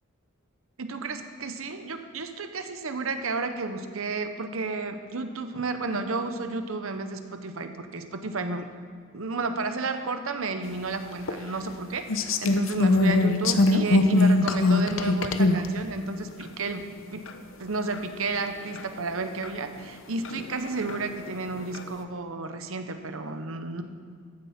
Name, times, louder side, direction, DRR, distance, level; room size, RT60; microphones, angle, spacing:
voice 1, 0.8-8.7 9.1-16.8 17.1-17.3 17.6-23.8, right 3 dB, 65° right, 7 dB, 0.9 m, -32 dB
sound 1, 11.3-11.4 12.1-15.7 16.4-16.5 17.3-17.4 17.9-18.0 18.8-18.9 19.4-19.5 20.2-21.0 21.5-21.8, left 2 dB, 60° left, 0.7 m, -22 dB
14.5 x 9.5 x 4.3 m, 2.1 s
head